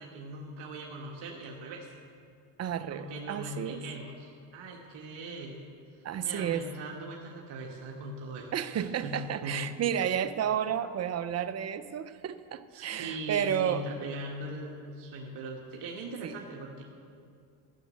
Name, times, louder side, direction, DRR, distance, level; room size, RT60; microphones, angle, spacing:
voice 1, 0.0-1.9 2.9-5.7 6.2-8.5 8.7-9.8 12.7-16.8, right 1 dB, 55° right, -1 dB, 1.5 m, -40 dB
voice 2, 2.6-3.8 6.0-6.7 8.5-13.9 16.2-16.3, right 9 dB, 30° right, 12 dB, 0.6 m, -31 dB
13.5 x 6.1 x 8.1 m, 2.4 s
supercardioid pair, 95°, 49 cm